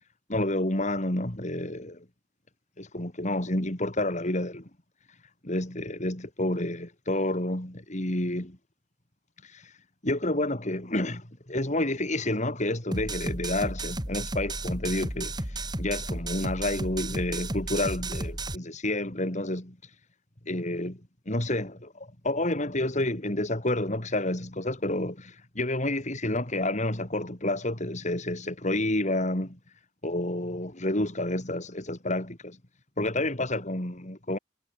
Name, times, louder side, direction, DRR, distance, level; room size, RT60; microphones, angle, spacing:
voice 1, 0.3-2.1 2.8-4.7 5.4-8.6 9.4-9.7 10.0-19.8 20.5-21.0 21.3-29.6 30.0-32.6 33.0-34.4, left 1 dB, 40° left, 3.5 m, -29 dB
sound 1, 12.9-18.6, right 2 dB, 20° right, 5.5 m, -33 dB
head